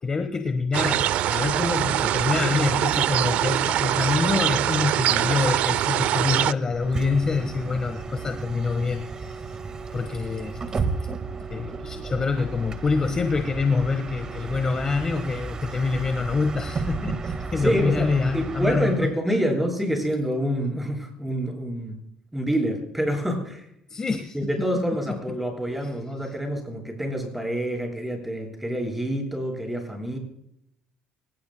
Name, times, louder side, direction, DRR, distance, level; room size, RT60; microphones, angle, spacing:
voice 1, 0.0-9.4 9.9-10.8 11.5-19.1 23.9-24.4 25.1-25.2, left 4 dB, 25° left, 8 dB, 1.4 m, -26 dB
sound 1, 0.7-6.5, right 12 dB, 65° right, 0.5 m, -23 dB
Bus, 6.7-19.1, right 4 dB, 30° right, 1.7 m, -33 dB
voice 2, 17.6-22.0 22.3-23.7 24.3-30.2, equal, 5° right, 2 dB, 7.4 m, -27 dB
26.0 x 18.5 x 2.2 m, 0.73 s
cardioid pair, 110°, 2 cm